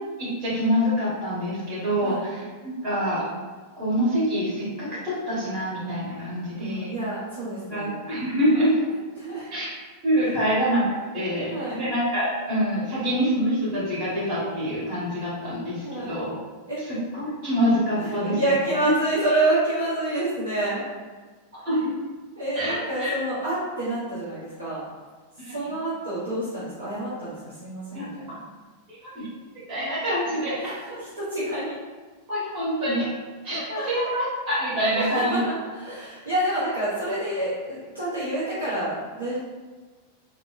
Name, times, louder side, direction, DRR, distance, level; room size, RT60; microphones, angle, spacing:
voice 1, 0.2-3.3 3.8-6.9 7.7-8.7 9.5-9.7 10.0-16.3 16.9-18.4 18.8-18.9 21.6-21.9 22.5-23.1 25.4-25.5 27.9-28.4 28.9-29.3 29.7-30.7 32.3-33.1 33.4-35.4, equal, 40° right, -9 dB, 1.5 m, -26 dB
voice 2, 6.6-8.0 8.9-9.5 11.3-11.8 15.8-16.1 16.7-16.8 18.0-20.8 22.4-24.8 25.5-28.4 30.6-31.8 33.5-34.1 34.9-39.4, right 1 dB, 70° right, -10 dB, 0.8 m, -28 dB
3.6 x 2.1 x 2.4 m, 1.4 s
figure-of-eight pair, 90°, 0 cm